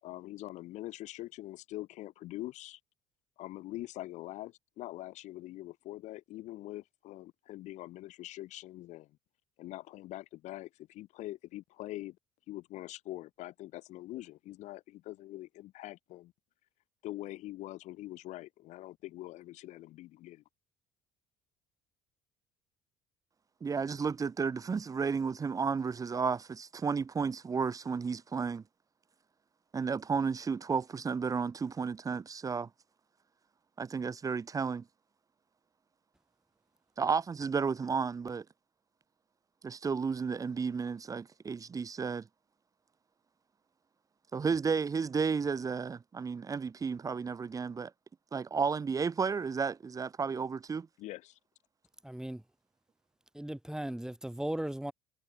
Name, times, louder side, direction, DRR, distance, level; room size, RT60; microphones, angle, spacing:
voice 1, 0.0-2.8 3.4-9.1 9.6-12.2 12.5-16.3 17.0-20.4 51.0-51.4, left 16 dB, 70° left, 4.2 m, -44 dB
voice 2, 23.6-28.6 29.7-32.7 33.8-34.8 37.0-38.4 39.6-42.3 44.3-47.9 48.3-50.9, right 5 dB, 25° right, 0.9 m, -32 dB
voice 3, 52.0-52.4 53.3-54.9, right 1 dB, 5° right, 2.9 m, -37 dB
supercardioid pair, 75°, 13 cm